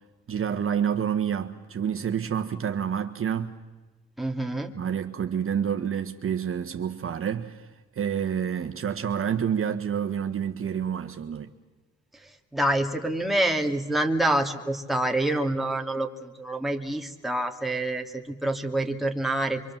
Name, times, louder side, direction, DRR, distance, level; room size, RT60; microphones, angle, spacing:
voice 1, 0.3-3.5 4.7-7.6 7.9-11.5, right 8 dB, 45° right, 1.5 m, -28 dB
voice 2, 4.2-4.7 12.5-19.6, right 1 dB, ahead, 2.5 m, -27 dB
26.5 x 25.0 x 7.4 m
cardioid pair, 90°, 30 cm